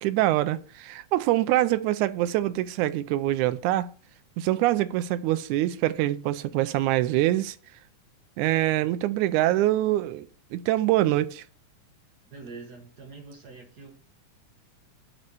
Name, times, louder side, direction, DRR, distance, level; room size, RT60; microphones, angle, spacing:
voice 1, 0.0-3.9 4.4-7.6 8.4-10.3 10.5-11.4, right 15 dB, 80° right, 1.9 m, -24 dB
voice 2, 12.2-13.9, right 4 dB, 60° right, 1.0 m, -44 dB
8.0 x 4.4 x 7.0 m
omnidirectional pair, 3.6 m